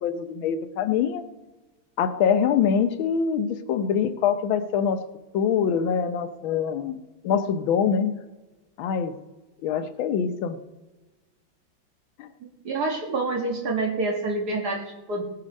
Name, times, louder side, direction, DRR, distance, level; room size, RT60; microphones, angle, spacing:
voice 1, 0.0-1.3 2.0-5.0 5.3-7.0 7.2-8.1 8.8-9.1 9.6-10.6 12.2-12.3, left 7 dB, 75° left, 10 dB, 1.6 m, -24 dB
voice 2, 12.7-15.2, right 3 dB, 50° right, 2 dB, 1.9 m, -27 dB
18.5 x 6.6 x 5.3 m, 1.2 s
omnidirectional pair, 2.2 m